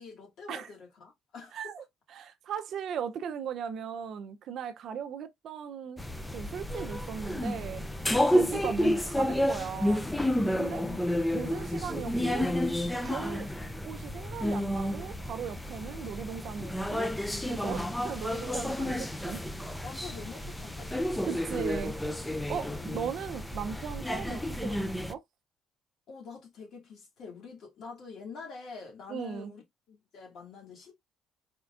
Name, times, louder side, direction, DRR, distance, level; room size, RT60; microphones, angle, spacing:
voice 1, 0.0-1.8 10.5-11.7 19.8-20.9 22.5-23.0 26.1-29.6 29.9-30.9, left 5 dB, 50° left, 2.1 m, -46 dB
voice 2, 1.5-1.8 2.1-6.0 6.3-7.8 8.3-10.1 10.6-10.8 11.3-12.5 13.0-13.5 13.8-17.1 17.5-19.4 21.2-21.9 22.5-25.2 29.1-29.5, right 7 dB, 50° right, 0.5 m, -37 dB
sound 1, 6.0-25.1, left 1 dB, 5° left, 0.4 m, -31 dB
4.3 x 3.7 x 2.4 m
cardioid pair, 155°, 0 cm